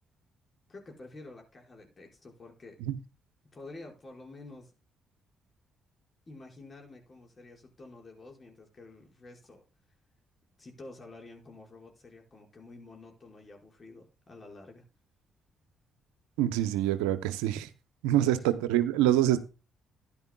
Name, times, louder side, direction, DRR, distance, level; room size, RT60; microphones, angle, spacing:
voice 1, 0.7-2.8 3.5-4.7 6.3-9.6 10.6-14.8 18.1-18.5, left 2 dB, 40° left, 5.1 m, -49 dB
voice 2, 16.4-17.7 18.0-19.4, right 12 dB, 90° right, 0.8 m, -26 dB
14.5 x 10.5 x 2.3 m
hypercardioid pair, 55°, 0 cm